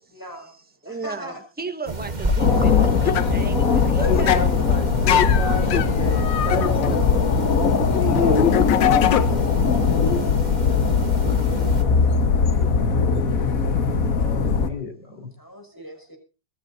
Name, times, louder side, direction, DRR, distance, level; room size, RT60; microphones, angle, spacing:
voice 1, 0.1-1.4 5.1-6.0 9.6-10.4 15.4-16.2, equal, 10° left, 5.7 m, -41 dB
voice 2, 0.8-4.4, right 3 dB, 5° right, 1.3 m, -34 dB
sound 1, 1.9-11.8, right 2 dB, 25° right, 2.3 m, -30 dB
sound 2, 2.4-14.7, left 5 dB, 50° left, 1.6 m, -20 dB
sound 3, 3.1-3.3 4.2-4.5 5.1-9.6 9.9-10.2 12.6-12.7, left 9 dB, 90° left, 1.7 m, -23 dB
voice 3, 3.9-7.1 7.7-9.4 14.1-15.3, left 3 dB, 70° left, 5.3 m, -31 dB
25.5 x 13.0 x 2.7 m
omnidirectional pair, 2.0 m